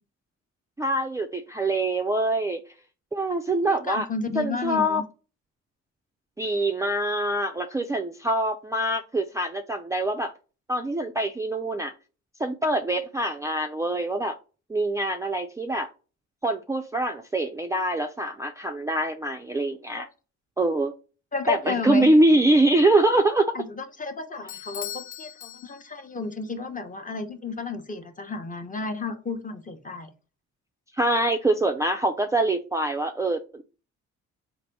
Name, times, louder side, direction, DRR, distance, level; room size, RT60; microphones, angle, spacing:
voice 1, 0.8-2.6 3.1-4.1 4.4-5.0 6.4-10.3 10.7-11.9 12.4-14.3 14.7-15.9 16.4-20.1 20.6-20.9 21.5-23.5 30.9-33.6, right 1 dB, 10° right, 4 dB, 0.4 m, -24 dB
voice 2, 3.5-5.0 19.9-20.1 21.3-22.1 23.5-30.1, left 4 dB, 25° left, 6 dB, 0.8 m, -32 dB
Bell / Doorbell, 24.5-26.2, left 11 dB, 80° left, 0.5 m, -39 dB
4.1 x 2.6 x 4.5 m, 0.34 s
cardioid pair, 90°, 30 cm